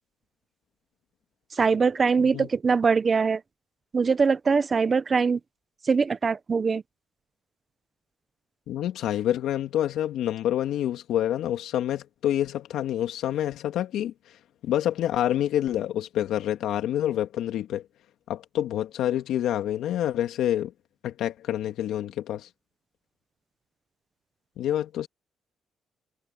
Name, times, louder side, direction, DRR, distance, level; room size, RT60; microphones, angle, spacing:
voice 1, 1.6-3.4 3.9-5.4 5.9-6.8, right 5 dB, 35° right, 0.9 m, -22 dB
voice 2, 8.7-14.1 14.6-17.8 18.3-20.7 21.0-22.5 24.6-25.1, left 11 dB, 80° left, 2.3 m, -27 dB
cardioid pair, 90°, 0 cm